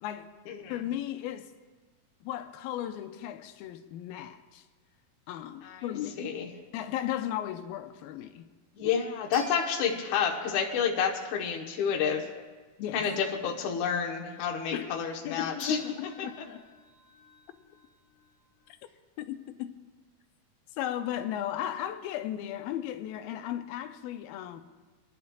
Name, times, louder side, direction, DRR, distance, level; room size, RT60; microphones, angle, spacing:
voice 1, 0.7-1.5 2.2-4.6 5.3-6.4 6.7-8.5 12.8-13.1 14.7-15.0 15.2-16.6 17.5-17.6 19.2-19.7 20.8-24.6, left 11 dB, 85° left, 2.4 m, -36 dB
voice 2, 6.2-6.5 8.8-12.2 12.9-16.3, left 7 dB, 65° left, 2.2 m, -29 dB
sound 1, 9.3-11.3 15.6-18.7, left 1 dB, 20° left, 2.6 m, -50 dB
26.0 x 10.5 x 2.3 m
omnidirectional pair, 4.2 m